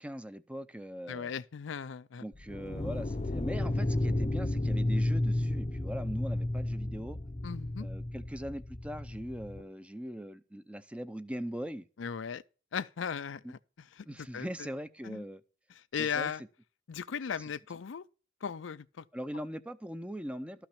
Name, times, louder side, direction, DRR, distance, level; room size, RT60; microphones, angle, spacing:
voice 1, 0.0-1.3 2.2-7.2 7.8-11.9 13.4-13.5 14.1-15.4 16.0-16.3 19.1-20.7, equal, 5° right, 0.6 m, -41 dB
voice 2, 1.1-2.2 7.4-7.9 12.0-12.4 12.7-13.6 14.0-14.1 14.3-14.7 15.0-15.2 15.7-16.4 16.9-18.0 18.4-19.0, left 7 dB, 80° left, 0.5 m, -37 dB
sound 1, 2.3-9.6, left 1 dB, 35° left, 0.7 m, -32 dB
12.5 x 5.9 x 5.8 m
head